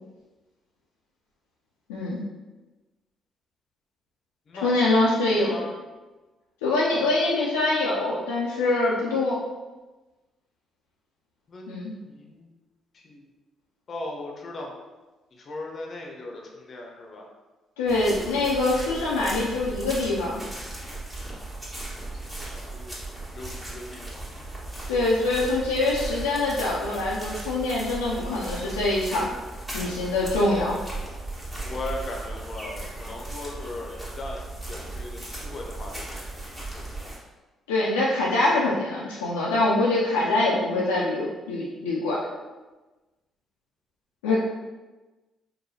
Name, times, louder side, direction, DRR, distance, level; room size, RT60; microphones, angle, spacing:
voice 1, 1.9-2.2 4.6-5.6 6.6-9.4 11.7-12.0 17.8-20.4 24.9-29.3 29.7-30.8 37.7-42.2 44.2-44.4, left 2 dB, 75° left, -6 dB, 0.5 m, -24 dB
voice 2, 4.5-5.7 11.5-12.5 12.9-13.3 13.9-14.7 15.3-17.2 22.4-23.0 23.3-24.3 31.6-34.4 34.7-37.1 44.3-44.4, left 2 dB, 45° left, 0 dB, 0.7 m, -38 dB
sound 1, 17.9-37.2, right 2 dB, 15° right, 1.3 m, -37 dB
4.8 x 2.2 x 2.7 m, 1.2 s
figure-of-eight pair, 40°, 0 cm